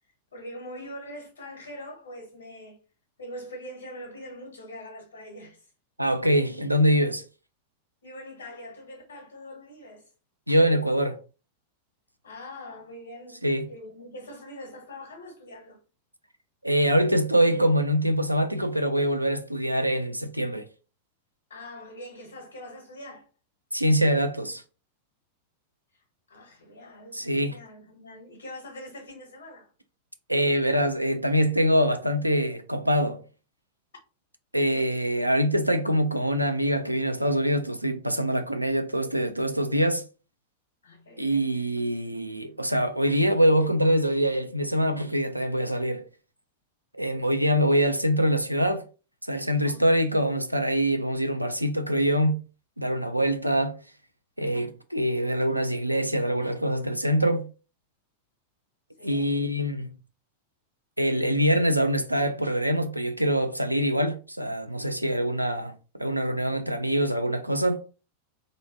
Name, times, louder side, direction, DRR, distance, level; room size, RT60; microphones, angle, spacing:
voice 1, 0.3-2.8 3.2-5.7 8.0-10.1 12.2-13.4 13.7-15.8 21.5-23.3 25.9-29.7 34.6-34.9 40.8-41.6 47.1-47.4 49.6-49.8 59.0-59.4, left 1 dB, 65° left, 0.8 m, -43 dB
voice 2, 6.0-7.2 10.5-11.2 13.4-13.7 16.6-20.6 23.7-24.6 27.1-27.6 30.3-33.2 34.5-40.0 41.2-46.0 46.9-48.8 49.3-52.4 52.8-53.8 54.4-57.5 59.0-60.0 61.0-67.8, equal, 90° right, 0.3 m, -24 dB
2.5 x 2.1 x 2.8 m
figure-of-eight pair, 90°, 0 cm